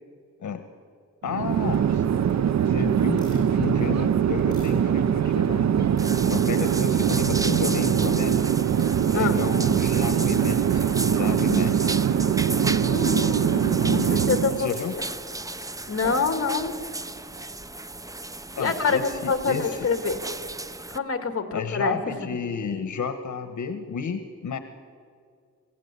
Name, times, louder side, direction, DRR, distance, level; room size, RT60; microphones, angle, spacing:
voice 1, 1.2-2.0 2.6-5.9 6.3-8.4 9.1-12.0 13.7-14.9 18.6-19.8 21.5-24.6, left 6 dB, 80° left, 9 dB, 1.2 m, -32 dB
Chatter / Fixed-wing aircraft airplane, 1.2-14.7, right 8 dB, 65° right, 0.6 m, -22 dB
sound 1, 3.1-3.5 4.1-5.6 5.9-6.0 6.5-6.6 7.4-7.6 8.2-8.3 8.7-8.9 10.0-10.4 11.4-11.7 12.9-13.3 14.6-15.3, left 2 dB, 15° left, 7.3 m, -52 dB
sound 2, 6.0-21.0, right 2 dB, 10° right, 0.5 m, -35 dB
voice 2, 9.1-9.5 12.5-14.7 15.9-16.7 18.6-20.2 20.9-22.0, left 5 dB, 50° left, 7 dB, 2.1 m, -26 dB
26.5 x 16.5 x 8.3 m, 2.2 s
wide cardioid pair, 145°, 30 cm